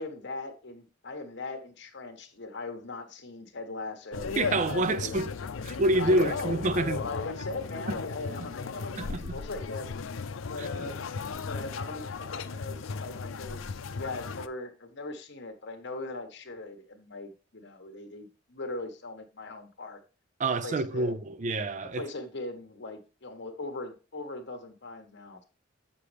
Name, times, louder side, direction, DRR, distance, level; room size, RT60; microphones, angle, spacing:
voice 1, 0.0-4.4 4.9-5.2 6.0-9.9 10.5-11.1 11.5-20.0 20.6-21.2 21.9-25.4, left 3 dB, 60° left, 1.3 m, -39 dB
sound 1, 4.1-14.5, left 5 dB, 90° left, 0.5 m, -36 dB
voice 2, 4.4-5.3 5.6-7.0 9.0-9.4 10.6-10.7 20.4-22.0, right 2 dB, 40° right, 0.5 m, -27 dB
8.2 x 6.7 x 3.4 m
head